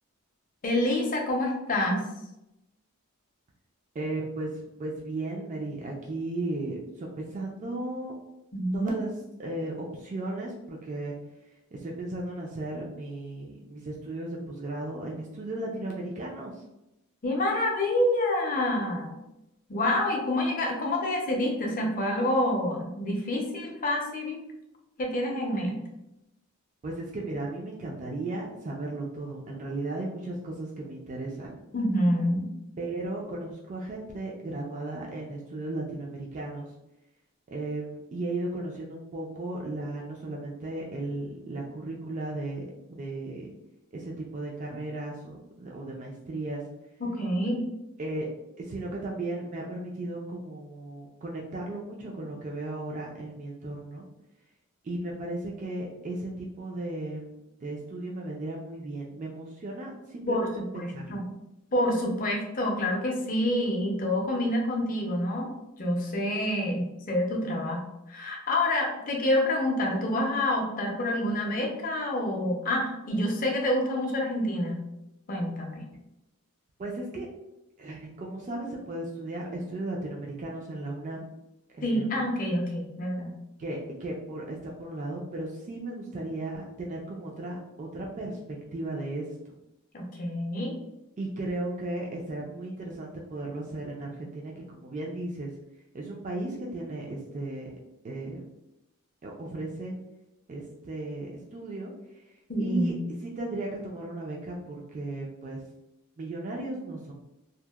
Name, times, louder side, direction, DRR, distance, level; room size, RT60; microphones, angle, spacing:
voice 1, 0.6-2.0 8.5-8.9 17.2-19.2 19.7-24.4 25.0-25.8 31.7-32.5 47.0-47.6 60.3-61.4 61.7-65.5 65.8-74.8 75.3-75.8 81.8-83.3 89.9-90.7 102.5-103.1, left 1 dB, 35° left, 0 dB, 0.5 m, -27 dB
voice 2, 3.9-8.1 8.7-9.1 9.4-11.1 11.7-16.6 26.8-31.6 32.8-36.7 37.5-42.6 42.9-43.5 43.9-46.6 48.0-48.3 48.6-54.1 54.8-61.2 76.8-77.3 77.8-81.3 81.8-82.2 83.6-89.5 91.2-95.5 95.9-97.7 98.0-98.4 99.2-100.0 100.5-105.6 106.2-107.1, right 2 dB, 35° right, -2 dB, 0.3 m, -35 dB
2.7 x 2.0 x 2.2 m, 0.89 s
head